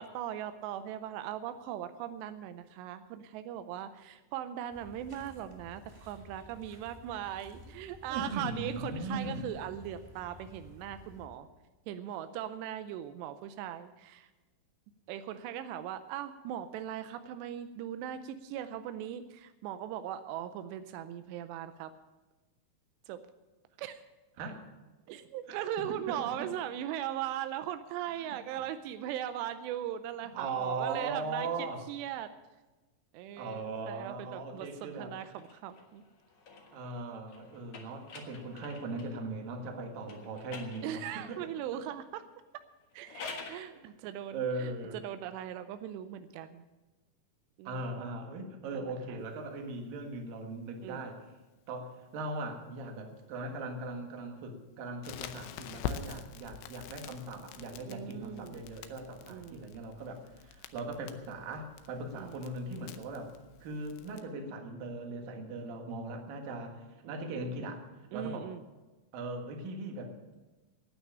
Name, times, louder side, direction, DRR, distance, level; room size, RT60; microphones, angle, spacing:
voice 1, 0.0-11.5 11.9-14.3 15.1-21.9 23.1-23.2 23.8-24.0 25.1-31.5 31.9-32.3 33.1-36.0 40.8-42.2 42.9-46.6 47.6-47.8 48.7-49.2 50.8-51.0 57.9-58.6 59.3-59.7 62.2-62.4 67.0-67.7 68.1-68.6, right 11 dB, 90° right, 10 dB, 2.8 m, -39 dB
sound 1, 4.7-11.3, left 1 dB, 35° right, 0.4 m, -53 dB
voice 2, 8.1-9.4 24.4-24.6 25.5-25.7 26.1-26.5 28.2-28.6 30.3-31.8 33.4-35.1 36.7-41.8 44.3-45.0 47.6-51.2 51.7-63.3 63.6-67.8 68.1-68.5 69.1-70.1, right 3 dB, 60° right, 3 dB, 3.1 m, -39 dB
sound 2, 35.1-39.2 40.0-41.4 42.8-43.7, left 4 dB, 55° left, 1.7 m, -48 dB
Crackle, 55.0-64.2, left 9 dB, 85° left, 2.9 m, -45 dB
12.0 x 9.2 x 8.6 m, 1.2 s
omnidirectional pair, 4.8 m